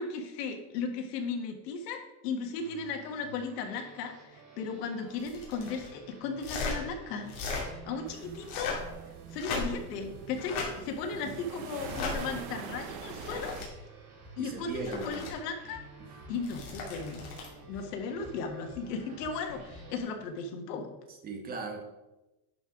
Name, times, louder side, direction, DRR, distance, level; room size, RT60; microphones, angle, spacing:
voice 1, 0.0-7.3 7.6-8.8 9.3-13.6 14.4-15.8 16.3-17.3 17.7-20.9, left 4 dB, 90° left, 4 dB, 1.7 m, -36 dB
sound 1, 2.5-20.0, right 3 dB, 80° right, 3.3 m, -51 dB
sound 2, 5.1-5.9 6.4-6.8 7.2-7.6 8.4-8.9 9.3-9.9 10.4-10.7 11.8-12.1 12.9-13.7 14.6-15.3 16.3-17.5 19.4-19.6, left 4 dB, 45° left, 2.5 m, -37 dB
sound 3, 8.1-13.7, right 8 dB, 35° right, 0.5 m, -45 dB
voice 2, 11.2-11.7 14.4-15.2 16.0-16.1 17.7-17.8 21.1-21.8, right 4 dB, 20° right, 4 dB, 1.0 m, -40 dB
11.0 x 5.6 x 3.8 m, 1.0 s
supercardioid pair, 170°, 47 cm